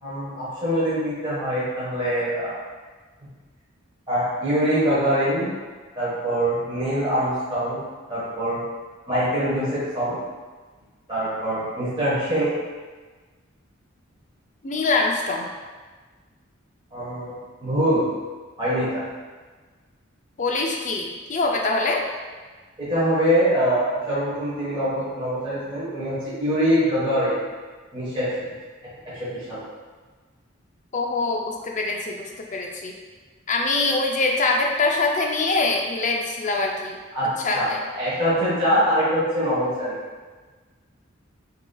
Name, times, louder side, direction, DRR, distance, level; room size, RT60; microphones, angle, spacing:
voice 1, 0.0-2.6 4.1-5.5 6.0-7.8 8.1-8.6 9.1-10.2 11.1-12.5 16.9-17.3 17.6-18.1 18.6-19.0 22.8-27.4 27.9-28.4 29.0-29.6 37.1-37.3 37.5-37.7 37.9-40.0, equal, 25° right, -11 dB, 1.3 m, -23 dB
voice 2, 14.6-15.4 20.4-22.0 30.9-32.9 33.5-37.0 37.4-37.8, left 3 dB, 40° left, 1 dB, 0.5 m, -24 dB
6.9 x 2.8 x 2.3 m, 1.4 s
head